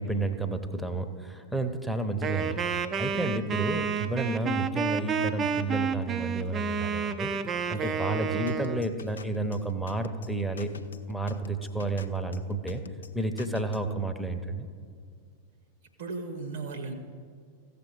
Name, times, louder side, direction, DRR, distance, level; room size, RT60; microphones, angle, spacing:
voice 1, 0.0-2.6 3.0-7.3 7.7-10.7 11.1-12.8 13.1-14.7, right 2 dB, ahead, 8 dB, 0.8 m, -31 dB
Wind instrument woodwind instrument, 2.2-8.9, right 6 dB, 25° right, 0.5 m, -30 dB
voice 2, 7.7-8.1 16.0-16.9, right 3 dB, 60° right, 6 dB, 1.2 m, -37 dB
sound 1, 8.5-13.9, left 5 dB, 70° left, 0.4 m, -44 dB
15.5 x 6.8 x 4.7 m, 2.1 s
figure-of-eight pair, 90°, 0 cm